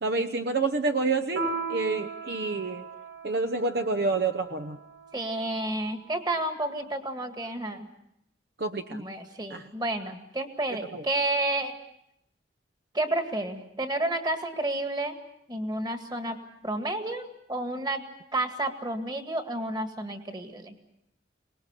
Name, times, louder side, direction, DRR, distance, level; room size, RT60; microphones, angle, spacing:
voice 1, 0.0-2.9 3.2-4.8 8.6-9.0 9.5-9.7 10.9-11.1, right 3 dB, 60° right, 9 dB, 0.9 m, -28 dB
Piano, 1.4-6.3, right 4 dB, 90° right, 7.1 m, -38 dB
voice 2, 5.1-7.9 8.9-11.7 12.9-15.2 15.5-16.4 16.6-18.0 18.3-20.7, right 1 dB, 25° right, 7 dB, 2.0 m, -30 dB
24.0 x 20.0 x 8.3 m, 0.77 s
head